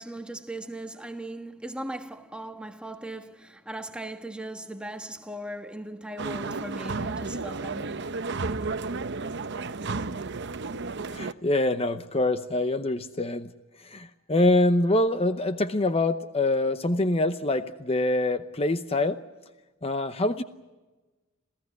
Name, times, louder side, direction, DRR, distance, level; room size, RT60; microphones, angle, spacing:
voice 1, 0.0-8.4, right 1 dB, 5° right, 1.4 m, -38 dB
sound 1, 6.2-11.3, right 3 dB, 55° right, 0.8 m, -32 dB
voice 2, 11.1-13.5 13.8-19.2 19.8-20.4, left 2 dB, 30° left, 0.8 m, -25 dB
28.0 x 16.5 x 9.6 m
head